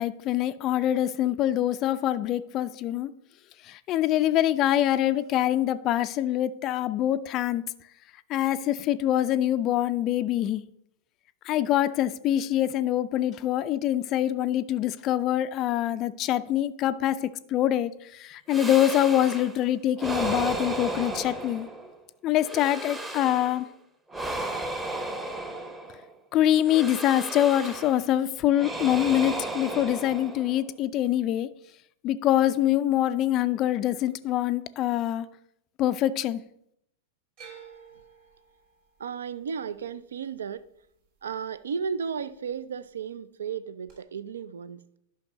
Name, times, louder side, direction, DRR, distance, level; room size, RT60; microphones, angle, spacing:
voice 1, 0.0-3.1 3.6-7.6 8.3-10.6 11.4-21.7 22.2-23.7 26.3-31.5 32.0-35.3 35.8-36.4, left 12 dB, 35° left, 0.3 m, -25 dB
sound 1, 18.5-19.6 20.0-22.0 22.4-23.6 24.1-26.1 26.7-28.1 28.5-30.7, right 2 dB, 15° right, 0.8 m, -34 dB
sound 2, 37.4-41.6 41.8-42.5 43.9-44.0, right 7 dB, 45° right, 3.3 m, -52 dB
voice 2, 39.0-40.7 41.2-44.8, right 6 dB, 65° right, 0.4 m, -34 dB
11.0 x 5.7 x 3.0 m
figure-of-eight pair, 95°, 0 cm